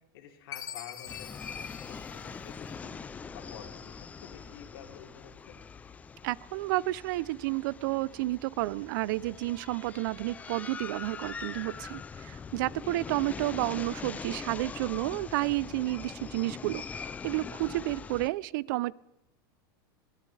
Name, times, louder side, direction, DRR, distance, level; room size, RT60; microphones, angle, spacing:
voice 1, 0.1-3.0 3.3-5.6 12.7-13.0, left 8 dB, 75° left, 1 dB, 3.0 m, -50 dB
Chime, 0.5-3.1, left 10 dB, 30° left, 1.1 m, -44 dB
sound 1, 1.1-18.3, left 5 dB, 10° left, 0.4 m, -43 dB
voice 2, 6.2-18.9, right 19 dB, 60° right, 23 dB, 0.4 m, -31 dB
21.0 x 17.0 x 3.3 m, 0.91 s
supercardioid pair, 150°, 12 cm